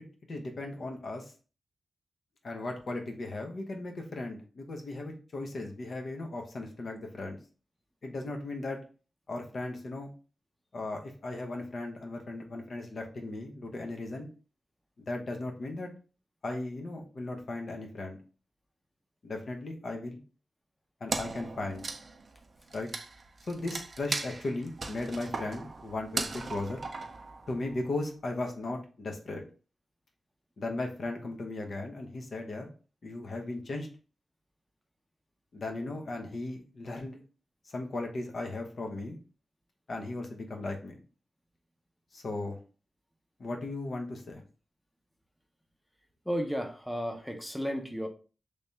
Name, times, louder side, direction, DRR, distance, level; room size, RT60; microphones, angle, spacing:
voice 1, 0.3-1.3 2.4-7.4 8.0-8.8 9.3-10.1 10.7-14.3 15.0-15.9 16.4-18.2 19.2-20.2 21.0-21.8 22.7-22.9 23.5-26.8 27.5-29.4 30.6-32.7 33.0-33.9 35.5-37.2 37.6-39.2 39.9-41.0 42.1-42.6 43.4-44.4, left 2 dB, 65° left, 2 dB, 0.8 m, -37 dB
Wood, 21.1-27.8, right 3 dB, 50° right, 0.5 m, -38 dB
voice 2, 46.2-48.1, equal, 5° left, 4 dB, 0.7 m, -33 dB
3.3 x 2.7 x 3.3 m, 0.36 s
cardioid pair, 75°, 0 cm